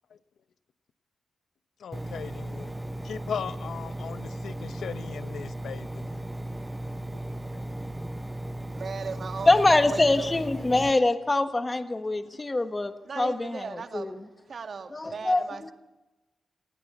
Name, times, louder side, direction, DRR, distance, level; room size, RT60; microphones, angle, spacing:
voice 1, 1.8-2.7 3.0-6.2 7.5-7.6 12.3-12.4, left 7 dB, 75° left, 1.0 m, -38 dB
Engine, 1.9-10.9, right 1 dB, 10° right, 0.7 m, -36 dB
voice 2, 8.7-10.3 13.0-14.2 14.5-15.7, right 5 dB, 50° right, 1.7 m, -37 dB
voice 3, 9.5-13.6 13.9-14.1 14.9-15.4, left 2 dB, 20° left, 1.3 m, -24 dB
26.5 x 17.0 x 8.0 m
wide cardioid pair, 135°, 0 cm